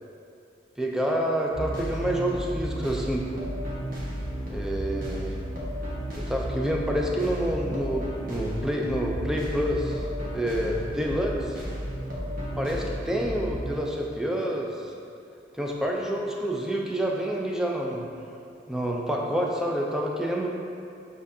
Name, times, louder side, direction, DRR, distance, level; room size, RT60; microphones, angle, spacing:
voice 1, 0.8-3.3 4.5-5.4 6.1-10.0 10.3-11.6 12.6-14.9 15.6-18.1 18.7-20.5, equal, 5° right, -1 dB, 0.3 m, -28 dB
sound 1, 1.5-13.7, equal, 50° right, 1.1 m, -33 dB
7.3 x 2.6 x 2.6 m, 2.5 s
head